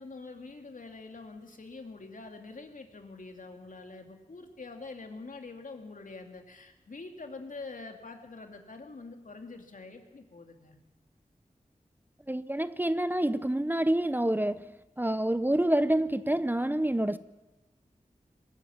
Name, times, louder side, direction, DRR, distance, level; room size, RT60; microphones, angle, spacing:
voice 1, 0.0-10.8, left 3 dB, 70° left, 2.9 m, -45 dB
voice 2, 12.3-14.7 15.0-17.2, right 1 dB, 15° right, 0.7 m, -27 dB
21.5 x 14.5 x 9.5 m
wide cardioid pair, 60°, 14 cm